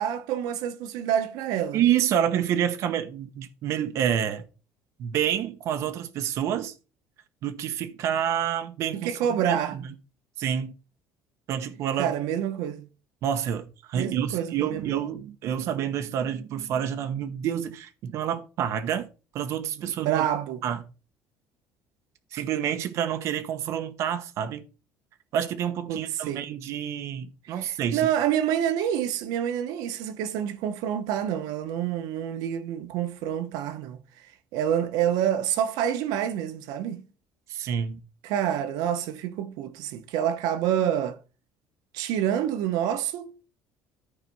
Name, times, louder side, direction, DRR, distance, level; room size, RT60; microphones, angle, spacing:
voice 1, 0.0-1.8 8.9-9.8 12.0-12.9 13.9-15.0 19.8-20.6 25.9-26.5 27.5-34.0 34.5-37.0 38.2-41.2 41.9-43.3, right 10 dB, 75° right, 1.0 m, -27 dB
voice 2, 1.7-4.4 5.0-6.7 7.4-9.1 9.4-9.8 10.4-10.7 11.5-12.1 13.2-19.1 19.3-20.3 20.6-20.8 22.3-24.6 25.3-28.0 37.5-38.0, right 9 dB, 50° right, 1.0 m, -28 dB
13.0 x 4.6 x 5.4 m
cardioid pair, 180°, 7 cm